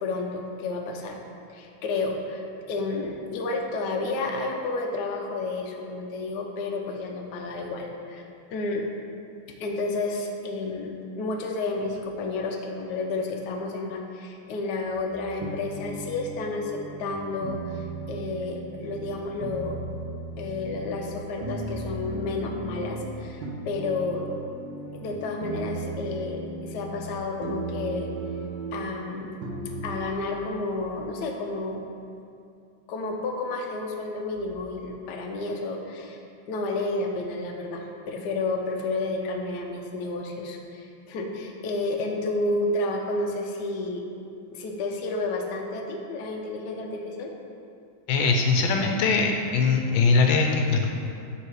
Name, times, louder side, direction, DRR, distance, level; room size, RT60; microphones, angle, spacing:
voice 1, 0.0-1.2 1.5-8.2 8.5-8.8 9.6-19.9 20.4-24.3 24.9-28.1 28.7-29.4 29.8-31.8 32.9-36.2 36.5-44.1 44.5-47.3, left 2 dB, 65° left, 1 dB, 1.2 m, -31 dB
sound 1, 14.9-19.1 19.4-21.1 21.4-25.1 25.4-27.1 27.4-28.9 29.4-30.0, right 2 dB, 70° right, 1.5 m, -36 dB
voice 2, 48.1-50.9, left 4 dB, 85° left, 3 dB, 1.5 m, -21 dB
8.7 x 3.9 x 4.7 m, 2.6 s
omnidirectional pair, 2.2 m